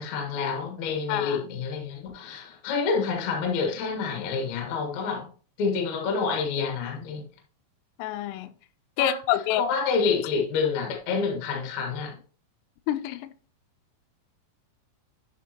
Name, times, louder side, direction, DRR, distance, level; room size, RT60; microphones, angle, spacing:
voice 1, 0.0-5.2 5.6-7.2 9.0-9.2 9.6-12.1, left 5 dB, 65° left, 1.7 m, -28 dB
voice 2, 1.1-1.4 8.0-8.5 9.0-9.6 12.9-13.3, left 11 dB, 85° left, 3.1 m, -27 dB
9.4 x 5.8 x 2.8 m
omnidirectional pair, 5.8 m